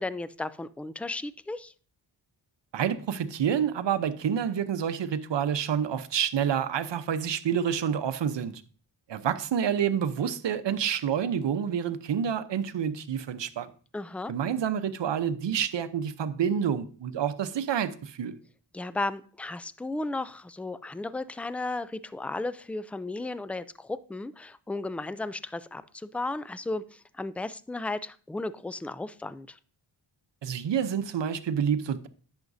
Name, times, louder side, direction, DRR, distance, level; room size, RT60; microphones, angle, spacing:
voice 1, 0.0-1.7 13.9-14.3 18.7-29.6, left 2 dB, 5° left, 0.3 m, -34 dB
voice 2, 2.7-8.6 9.1-13.7 14.3-18.4 30.4-32.1, right 8 dB, 70° right, 0.9 m, -28 dB
10.5 x 7.4 x 2.7 m
cardioid pair, 65°, 45 cm